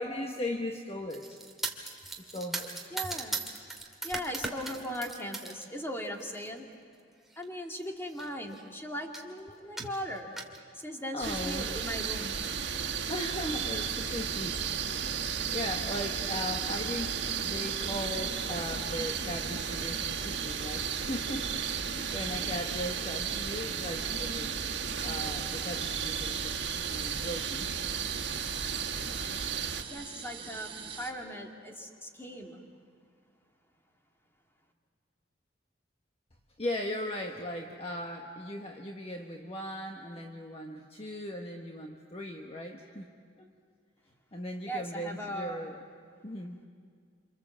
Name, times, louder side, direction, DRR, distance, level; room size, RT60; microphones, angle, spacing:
voice 1, 0.0-1.4 1.8-2.8 3.0-3.2 9.8-9.9 11.1-11.7 13.1-17.1 17.4-24.6 25.0-27.9 36.6-43.1 43.4-43.5 44.3-45.8 46.2-46.6, left 1 dB, 35° left, 2 dB, 1.3 m, -38 dB
sound 1, 1.1-5.7 6.0-6.5 7.3-7.4 7.8-7.9 8.1-8.7 9.1-9.3 9.8-10.6, right 2 dB, ahead, 2.2 m, -38 dB
voice 2, 2.9-3.4 4.0-6.7 7.4-10.3 10.7-12.4 29.9-30.7 31.0-32.6 44.7-45.6, equal, 15° left, 1 dB, 2.4 m, -38 dB
sound 2, 11.2-29.8, right 7 dB, 85° right, 1.5 m, -34 dB
sound 3, 12.3-31.1, right 4 dB, 35° right, 3.1 m, -45 dB
28.0 x 27.0 x 7.5 m, 2.1 s
head